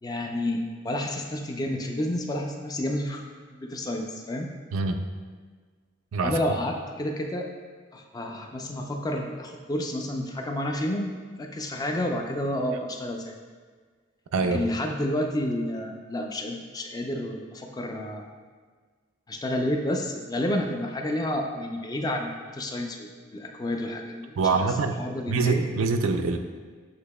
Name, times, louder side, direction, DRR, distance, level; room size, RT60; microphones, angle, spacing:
voice 1, 0.0-3.2 3.6-4.5 6.2-7.5 7.9-13.3 14.5-18.3 19.3-24.4 24.6-24.7 25.0-25.6, left 1 dB, 20° left, 2 dB, 0.3 m, -30 dB
voice 2, 4.7-5.0 6.1-6.4 14.3-14.6 24.4-25.0 25.3-26.4, right 4 dB, 85° right, 7 dB, 0.4 m, -24 dB
8.1 x 2.8 x 2.2 m, 1.5 s
head